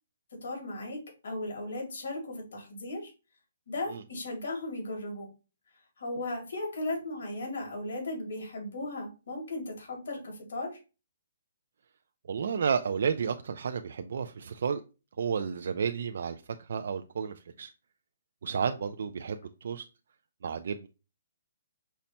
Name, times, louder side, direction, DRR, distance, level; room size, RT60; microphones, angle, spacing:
voice 1, 0.4-3.1 3.7-5.3 6.0-10.7, left 2 dB, 65° left, 2.1 m, -36 dB
voice 2, 12.3-14.8 15.2-17.7 18.4-19.9 20.4-20.9, right 6 dB, 60° right, 0.3 m, -32 dB
5.5 x 2.1 x 4.1 m
hypercardioid pair, 170°, 0 cm